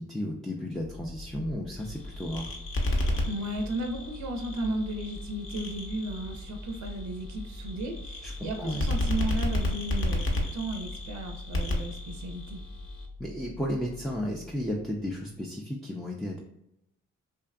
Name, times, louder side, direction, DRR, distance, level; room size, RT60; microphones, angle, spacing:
voice 1, 0.0-2.5 8.2-8.8 13.2-16.4, equal, ahead, -2 dB, 0.4 m, -33 dB
sound 1, 0.7-15.5, left 2 dB, 70° left, 0.8 m, -44 dB
sound 2, 1.8-13.1, left 1 dB, 40° left, 0.7 m, -33 dB
voice 2, 3.3-12.6, right 1 dB, 60° right, 4 dB, 0.5 m, -34 dB
2.6 x 2.4 x 2.3 m, 0.85 s
supercardioid pair, 60°, 32 cm